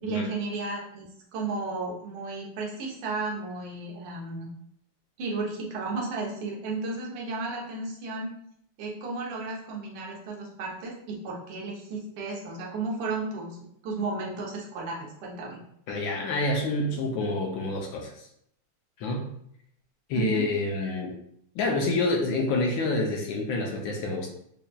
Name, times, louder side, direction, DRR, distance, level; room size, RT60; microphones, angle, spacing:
voice 1, 0.0-4.5 5.2-8.3 8.8-13.6 13.8-15.6 20.1-20.5, right 3 dB, 85° right, -2 dB, 1.8 m, -33 dB
voice 2, 15.9-18.1 19.0-19.3 20.1-21.2 21.5-24.3, left 2 dB, 75° left, 1 dB, 1.2 m, -27 dB
5.6 x 2.6 x 2.2 m, 0.71 s
omnidirectional pair, 2.3 m